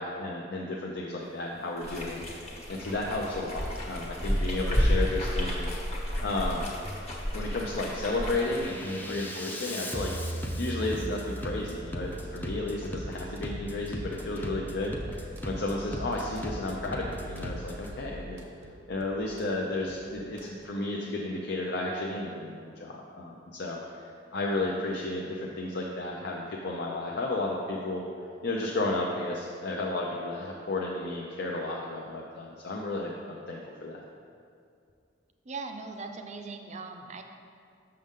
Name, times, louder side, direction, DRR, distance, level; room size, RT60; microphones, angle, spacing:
voice 1, 0.0-2.3 2.7-5.8 6.2-6.7 7.3-18.4 18.9-28.1 28.4-34.0, left 2 dB, 60° left, -2 dB, 0.6 m, -33 dB
sound 1, 1.8-8.7, equal, 35° left, 1.2 m, -31 dB
Bass drum, 2.2-2.3 2.8-3.3 4.1-4.3 4.8-5.3 6.1-6.3 6.8-7.3 7.7-17.9, equal, 10° left, 0.5 m, -38 dB
sound 2, 15.0-20.7, right 2 dB, 80° right, 0.7 m, -52 dB
voice 2, 35.5-37.2, right 4 dB, 40° right, 5 dB, 0.5 m, -39 dB
6.7 x 6.4 x 3.6 m, 2.4 s
head